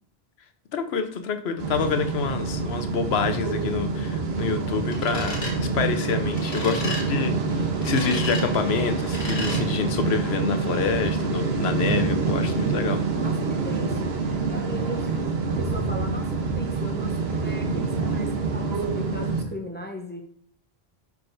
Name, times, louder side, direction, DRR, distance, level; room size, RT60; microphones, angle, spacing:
voice 1, 0.7-13.0, left 5 dB, 75° left, 8 dB, 1.0 m, -27 dB
sound 1, 1.6-19.4, right 4 dB, 70° right, 1.1 m, -26 dB
sound 2, 4.9-5.5 6.4-7.0 7.8-8.4 9.1-9.6, left 1 dB, 50° left, 2.0 m, -33 dB
voice 2, 13.2-20.2, right 1 dB, 10° left, 1 dB, 0.7 m, -37 dB
10.5 x 4.8 x 2.6 m, 0.63 s
omnidirectional pair, 1.1 m